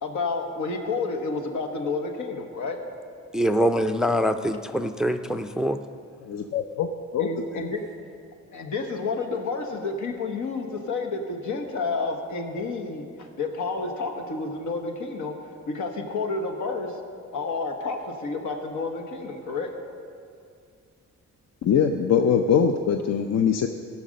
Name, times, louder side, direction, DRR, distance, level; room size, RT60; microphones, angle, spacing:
voice 1, 0.0-2.8 7.2-7.8 8.5-13.1 13.4-15.3 15.7-16.9 17.3-19.7, left 3 dB, 80° left, 4 dB, 1.4 m, -30 dB
voice 2, 3.3-5.8, equal, ahead, 9 dB, 0.4 m, -24 dB
voice 3, 6.2-6.9 7.1-7.6 21.6-23.7, left 7 dB, 60° left, 6 dB, 0.6 m, -22 dB
15.0 x 6.0 x 6.4 m, 2.3 s
cardioid pair, 105°, 30 cm